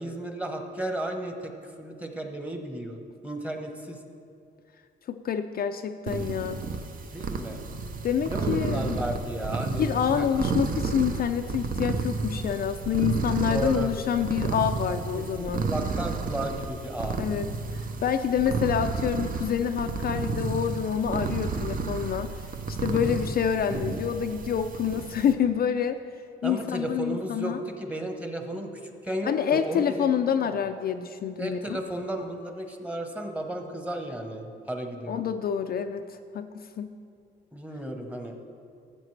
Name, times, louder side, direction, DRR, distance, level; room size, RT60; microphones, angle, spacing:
voice 1, 0.0-4.0 7.1-7.6 8.3-10.3 13.5-13.9 15.2-17.2 22.9-23.2 26.4-30.1 30.4-30.5 31.4-35.2 37.5-38.4, right 1 dB, 5° right, 4 dB, 1.0 m, -34 dB
voice 2, 5.1-6.6 8.0-9.0 9.8-15.6 17.2-17.5 17.7-22.3 22.7-26.0 26.4-27.6 29.2-31.8 35.1-36.0 36.3-36.9, left 8 dB, 50° left, 7 dB, 0.4 m, -27 dB
sound 1, 6.1-25.3, right 4 dB, 45° right, 0.7 m, -32 dB
13.5 x 8.0 x 3.3 m, 2.4 s
cardioid pair, 90°, 20 cm